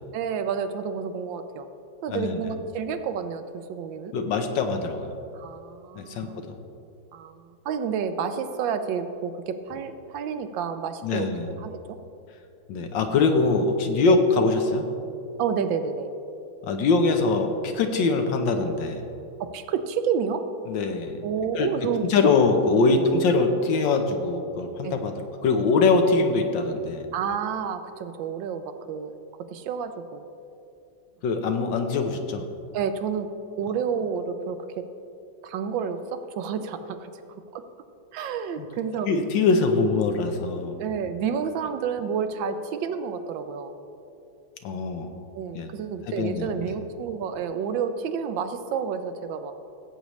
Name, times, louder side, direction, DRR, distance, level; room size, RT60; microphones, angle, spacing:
voice 1, 0.1-1.7 2.0-4.1 5.3-6.4 7.1-7.4 7.6-11.3 11.6-12.0 14.1-14.2 15.4-16.1 18.1-18.2 19.4-20.4 21.2-22.1 23.0-23.1 24.8-25.0 27.1-29.1 29.5-30.2 32.7-33.3 33.6-34.8 35.4-37.1 37.5-37.6 38.1-39.1 40.8-43.7 45.3-49.5, right 7 dB, 75° right, 9 dB, 1.3 m, -30 dB
voice 2, 2.1-2.4 4.1-5.1 5.9-6.5 11.0-11.5 12.7-14.9 16.6-19.0 20.7-21.2 21.6-25.1 25.4-27.0 31.2-32.4 38.6-38.7 39.1-40.8 44.6-45.1 45.5-45.7 46.1-46.5, left 3 dB, 75° left, 5 dB, 1.5 m, -23 dB
16.0 x 8.4 x 3.1 m, 2.7 s
omnidirectional pair, 2.1 m